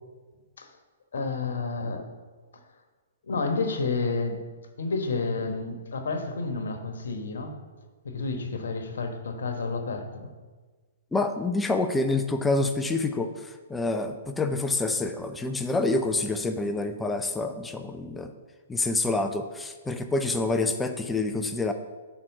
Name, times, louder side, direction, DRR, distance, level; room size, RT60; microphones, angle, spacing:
voice 1, 1.1-2.1 2.5-2.6 3.2-4.4 4.8-7.6 8.0-10.3, left 3 dB, 75° left, 6 dB, 1.1 m, -30 dB
voice 2, 11.1-18.3 18.7-21.7, left 2 dB, 10° left, 7 dB, 0.4 m, -27 dB
5.8 x 4.5 x 6.4 m, 1.4 s
hypercardioid pair, 125°, 0 cm